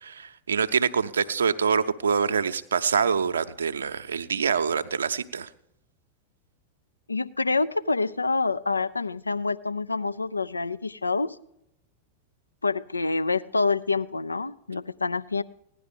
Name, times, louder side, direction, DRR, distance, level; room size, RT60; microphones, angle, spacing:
voice 1, 0.0-5.5, right 6 dB, 70° right, 11 dB, 0.7 m, -25 dB
voice 2, 7.1-11.4 12.6-15.4, left 3 dB, 80° left, 12 dB, 0.4 m, -27 dB
16.5 x 11.0 x 5.3 m, 0.79 s
figure-of-eight pair, 90°, 0 cm